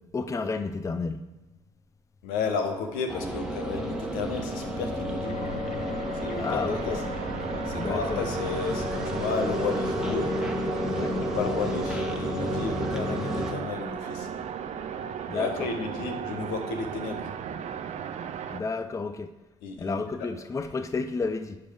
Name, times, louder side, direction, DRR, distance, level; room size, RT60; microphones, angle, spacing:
voice 1, 0.1-1.2 6.4-7.0 7.8-8.2 10.9-11.2 15.3-15.7 18.5-19.3 19.8-21.6, left 4 dB, 20° left, 0.5 m, -31 dB
voice 2, 2.2-5.3 6.2-7.0 7.6-10.3 11.2-14.3 15.3-17.3 19.6-20.3, left 5 dB, 75° left, 1.2 m, -33 dB
sound 1, 3.0-18.6, right 8 dB, 50° right, 0.7 m, -37 dB
sound 2, 3.1-13.5, equal, 5° right, 1.3 m, -31 dB
sound 3, 5.2-15.9, left 4 dB, 55° left, 0.9 m, -45 dB
10.5 x 5.4 x 4.8 m
hypercardioid pair, 60°, 15 cm